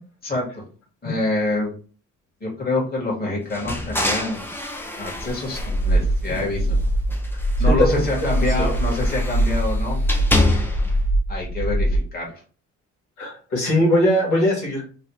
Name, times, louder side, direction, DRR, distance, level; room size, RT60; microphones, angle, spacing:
voice 1, 1.0-1.7 2.4-4.6 5.0-6.7 7.6-10.0 11.3-12.4, left 2 dB, 30° left, -3 dB, 1.6 m, -26 dB
sound 1, 3.5-6.7 7.1-11.0, left 2 dB, 5° left, 0.6 m, -27 dB
sound 2, 5.6-12.0, right 1 dB, 60° left, 0.6 m, -22 dB
voice 2, 6.3-6.8 7.6-8.1 8.6-8.7 13.2-14.8, left 1 dB, 85° left, -2 dB, 1.5 m, -21 dB
3.1 x 2.4 x 3.0 m, 0.39 s
cardioid pair, 90°, 30 cm